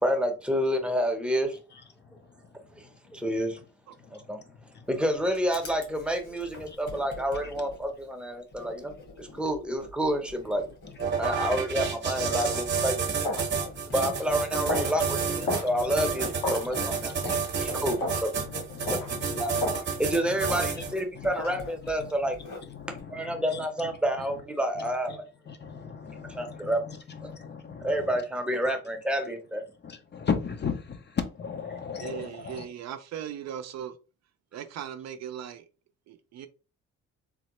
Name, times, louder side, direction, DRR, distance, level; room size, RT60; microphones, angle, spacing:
voice 1, 0.0-1.6 2.8-2.9 3.1-3.6 4.1-4.4 4.9-10.6 11.2-13.2 13.9-17.2 17.6-18.3 18.9-19.0 19.4-19.5 20.0-22.4 23.1-25.2 26.3-26.8 27.2-27.3 27.8-29.6, equal, 5° right, 0.7 m, -29 dB
voice 2, 1.7-2.3 4.0-4.9 6.7-6.8 9.3-9.5 11.1-11.4 12.3-12.4 13.5-13.9 14.7-14.9 15.4-16.1 16.7-20.4 20.7-20.8 21.1-21.7 22.0-22.3 22.7-23.7 24.8-25.2 25.5-28.2 29.8-32.7, left 6 dB, 35° left, 0.5 m, -38 dB
Writing, 4.8-20.2 20.4-23.0, left 2 dB, 65° left, 1.7 m, -45 dB
sound 1, 11.0-21.0, right 6 dB, 40° right, 0.9 m, -30 dB
sound 2, 12.5-12.7 13.2-13.5 14.0-14.2 14.7-14.9 15.5-15.7 16.4-16.6 17.2-17.4 18.0-18.2 18.9-19.1 19.6-19.9 20.5-20.7 21.4-21.6, left 1 dB, 80° left, 1.4 m, -31 dB
voice 3, 32.0-34.0 34.5-35.7 36.1-36.5, right 9 dB, 60° right, 0.4 m, -38 dB
3.5 x 2.0 x 3.0 m
cardioid pair, 90°, 30 cm